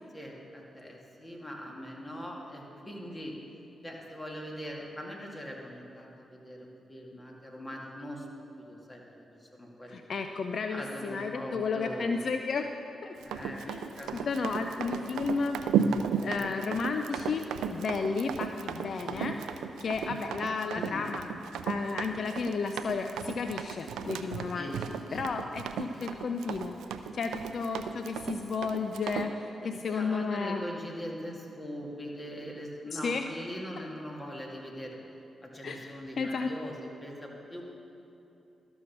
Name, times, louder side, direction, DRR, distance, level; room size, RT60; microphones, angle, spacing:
voice 1, 0.1-3.3 3.8-8.3 8.7-10.0 10.7-12.2 13.2-15.0 16.4-16.7 19.0-19.3 20.8-21.1 24.6-24.8 25.1-26.1 29.6-35.0 35.4-37.6, equal, 25° left, -1 dB, 2.2 m, -42 dB
voice 2, 9.9-12.7 13.0-13.1 13.7-13.9 14.3-15.6 16.2-19.3 19.8-21.2 21.6-24.7 25.1-26.7 27.1-30.6 32.9-33.2 35.6-36.5, left 4 dB, 65° left, 6 dB, 0.4 m, -33 dB
Run, 13.2-29.3, right 7 dB, 85° right, 0.4 m, -34 dB
12.5 x 6.2 x 6.0 m, 3.0 s
supercardioid pair, 45°, 0 cm